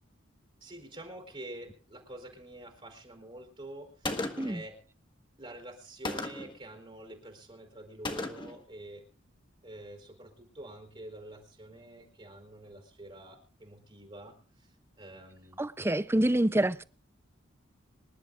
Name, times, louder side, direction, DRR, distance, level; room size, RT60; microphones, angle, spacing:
voice 1, 0.6-4.8 5.4-9.1 9.6-14.7 15.0-15.6 16.5-16.7, right 1 dB, 30° right, 3.9 m, -47 dB
Gunshot gunfire, 4.0-4.6 6.1-6.6 8.1-8.6, left 2 dB, 25° left, 1.6 m, -35 dB
voice 2, 15.6-16.8, right 1 dB, 10° right, 0.6 m, -27 dB
26.5 x 11.5 x 2.5 m
head